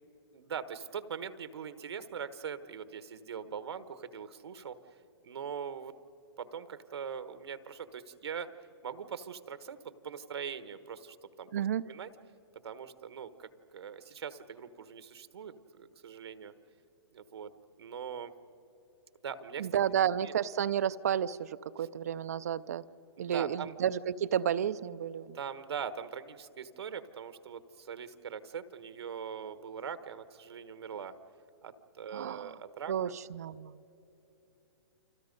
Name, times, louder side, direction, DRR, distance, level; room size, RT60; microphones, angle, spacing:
voice 1, 0.3-4.8 5.2-5.9 6.4-8.5 8.8-11.5 11.8-12.1 12.6-16.5 17.1-18.3 19.2-19.8 20.1-20.3 21.8-21.9 23.2-23.7 25.3-31.1 31.6-32.9, right 7 dB, 80° right, 12 dB, 1.3 m, -42 dB
voice 2, 11.5-11.8 19.6-22.8 23.2-25.4 32.1-32.5 32.9-33.8, right 9 dB, 40° right, 15 dB, 0.4 m, -31 dB
30.0 x 25.0 x 5.3 m, 2.9 s
hypercardioid pair, 180°, 13 cm